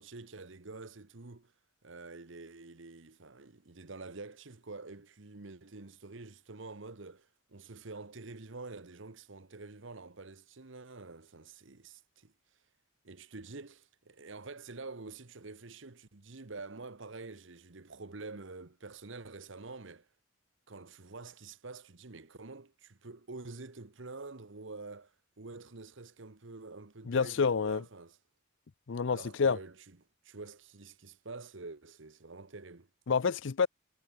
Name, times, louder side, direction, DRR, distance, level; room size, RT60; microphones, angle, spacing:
voice 1, 0.0-1.5 1.8-12.3 13.0-20.1 20.7-28.2 29.1-30.0 30.2-32.9, right 3 dB, 65° right, 1.2 m, -47 dB
voice 2, 27.1-27.8 28.9-29.6 33.1-33.7, left 5 dB, 60° left, 0.5 m, -28 dB
head